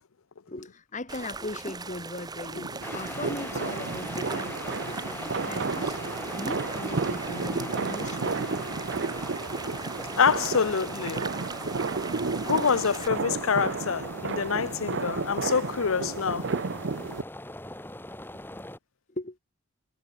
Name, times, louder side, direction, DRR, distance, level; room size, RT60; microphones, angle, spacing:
voice 1, 0.5-6.0 6.3-8.7 19.2-19.4, left 2 dB, 35° left, 1.5 m, -39 dB
sound 1, 1.1-13.1, right 4 dB, 20° right, 0.9 m, -40 dB
sound 2, 2.5-17.2, right 4 dB, 55° right, 0.6 m, -32 dB
sound 3, 2.8-18.8, left 1 dB, 10° left, 2.6 m, -41 dB
voice 2, 10.2-11.2 12.4-16.5, left 6 dB, 75° left, 0.7 m, -26 dB
head